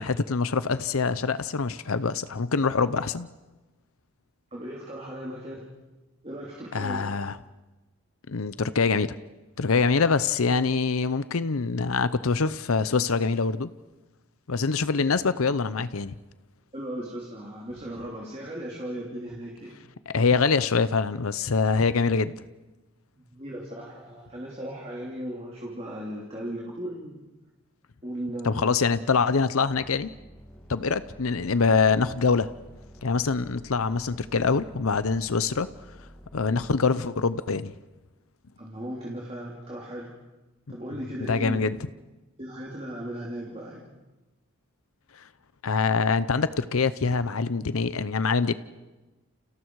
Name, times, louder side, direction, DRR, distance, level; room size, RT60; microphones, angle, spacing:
voice 1, 0.0-3.3 6.7-7.4 8.3-9.2 9.6-13.7 14.5-16.1 20.1-22.3 28.4-30.1 30.7-32.5 33.0-35.7 36.3-37.7 41.3-41.8 45.6-48.6, left 4 dB, 80° left, 14 dB, 0.7 m, -24 dB
voice 2, 4.5-5.7 6.2-7.0 16.7-19.8 23.2-27.2 28.0-28.7 38.6-40.1 40.7-41.6 42.4-43.9, right 1 dB, 30° right, -3 dB, 3.2 m, -37 dB
sound 1, 29.6-36.7, equal, 5° left, 1.9 m, -50 dB
30.0 x 29.0 x 4.8 m, 1.1 s
head